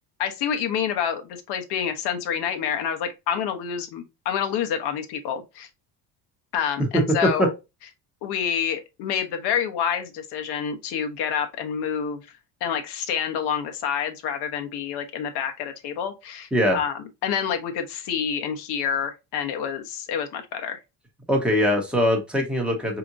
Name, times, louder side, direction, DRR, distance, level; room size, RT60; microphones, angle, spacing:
voice 1, 0.2-5.7 6.5-7.5 8.2-12.2 12.6-16.9 17.2-20.8, left 8 dB, 65° left, 1.0 m, -28 dB
voice 2, 6.9-7.5 16.5-16.8 21.3-23.0, equal, ahead, 0.9 m, -21 dB
4.9 x 2.9 x 2.5 m
cardioid pair, 155°, 42 cm